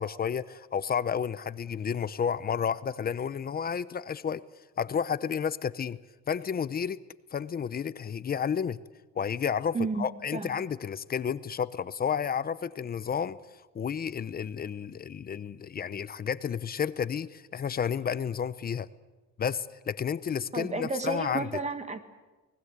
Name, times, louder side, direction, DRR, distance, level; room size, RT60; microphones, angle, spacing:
voice 1, 0.0-4.4 4.8-6.0 6.3-7.0 7.3-8.8 9.2-13.4 13.7-18.9 19.4-21.6, left 7 dB, 30° left, 15 dB, 0.8 m, -31 dB
voice 2, 9.7-10.1 10.3-10.5 20.5-22.0, right 3 dB, 20° right, 9 dB, 1.8 m, -31 dB
29.0 x 20.0 x 8.2 m, 1.2 s
cardioid pair, 125°, 30 cm